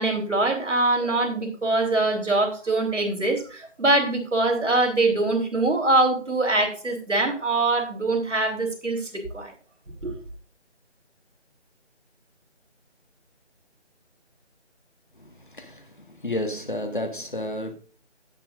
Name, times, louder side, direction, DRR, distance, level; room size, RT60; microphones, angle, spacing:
voice 1, 0.0-9.5 10.0-10.1, right 2 dB, 90° right, 3.6 m, -23 dB
voice 2, 16.2-17.7, left 1 dB, 45° left, 1.6 m, -30 dB
17.5 x 6.0 x 2.4 m
figure-of-eight pair, 180°, 35 cm